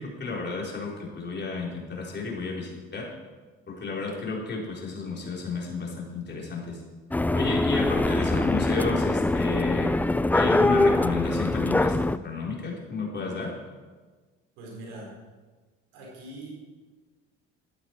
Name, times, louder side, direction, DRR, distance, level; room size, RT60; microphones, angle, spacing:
voice 1, 0.0-3.1 3.7-6.8 7.3-9.9 10.3-12.0 12.2-13.5, left 3 dB, 35° left, -2 dB, 4.1 m, -32 dB
sound 1, 7.1-12.2, left 2 dB, 5° left, 0.4 m, -23 dB
voice 2, 14.6-15.1 15.9-16.5, right 1 dB, 80° right, -2 dB, 4.8 m, -42 dB
13.0 x 11.5 x 4.6 m, 1.3 s
hypercardioid pair, 65°, 30 cm